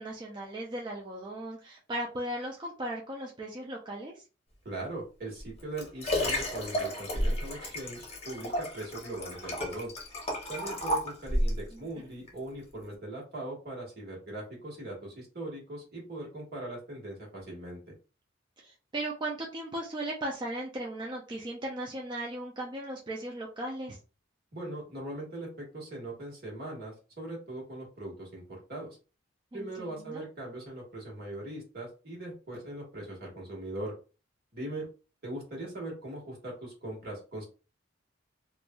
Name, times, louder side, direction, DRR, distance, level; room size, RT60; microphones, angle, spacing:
voice 1, 0.0-4.2 11.7-12.1 18.6-24.0 29.5-30.2, right 1 dB, 25° right, -2 dB, 0.4 m, -37 dB
voice 2, 4.6-9.9 10.5-17.8 24.5-29.0 29.5-33.9 34.5-34.9 35.2-37.4, right 1 dB, 55° right, -2 dB, 1.4 m, -40 dB
Liquid, 5.4-11.6 12.3-12.4, equal, 30° left, 0.8 m, -32 dB
3.0 x 2.5 x 2.3 m, 0.34 s
head